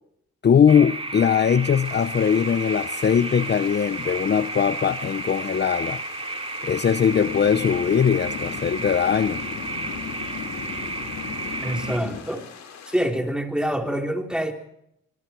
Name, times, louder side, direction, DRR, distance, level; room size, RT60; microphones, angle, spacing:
voice 1, 0.4-6.0 6.6-9.4, left 7 dB, 35° left, 13 dB, 0.8 m, -20 dB
sound 1, 0.7-12.0, right 3 dB, 20° right, 3.4 m, -32 dB
sound 2, 1.8-13.1, left 7 dB, 60° left, 5.7 m, -44 dB
sound 3, 7.1-12.2, left 7 dB, 80° left, 4.1 m, -36 dB
voice 2, 11.6-12.5 12.9-14.5, equal, 5° right, 3 dB, 3.9 m, -26 dB
24.0 x 24.0 x 4.6 m, 0.78 s
cardioid pair, 90°, 30 cm